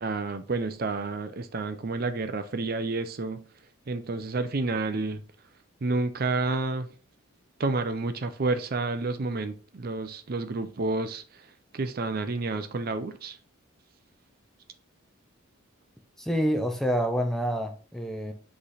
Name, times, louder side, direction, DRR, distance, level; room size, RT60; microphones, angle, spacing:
voice 1, 0.0-3.4 3.9-5.2 5.8-6.9 7.6-13.4, right 3 dB, 45° right, 0.5 m, -30 dB
voice 2, 16.2-18.3, equal, ahead, 0.7 m, -27 dB
7.8 x 3.3 x 4.1 m
head